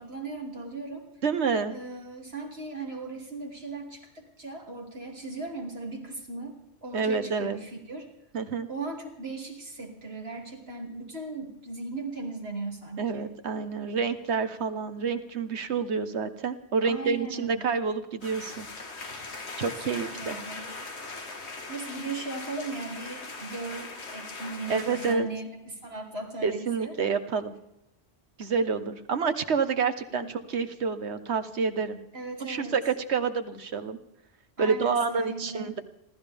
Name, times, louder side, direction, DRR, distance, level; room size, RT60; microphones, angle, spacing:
voice 1, 0.0-1.1 1.7-6.5 6.8-8.1 8.7-13.3 16.8-17.6 19.6-20.7 21.7-27.0 30.1-30.4 32.1-32.8 34.6-35.7, right 3 dB, 70° right, 0 dB, 3.2 m, -38 dB
voice 2, 1.2-1.7 6.9-7.6 8.3-8.7 13.0-18.7 19.6-20.4 24.7-25.3 26.4-27.5 28.4-32.0 32.4-34.0 34.6-35.8, right 5 dB, 85° right, 9 dB, 1.4 m, -28 dB
sound 1, 18.2-25.2, left 3 dB, 85° left, 2.1 m, -40 dB
29.5 x 13.5 x 3.5 m, 0.81 s
omnidirectional pair, 1.1 m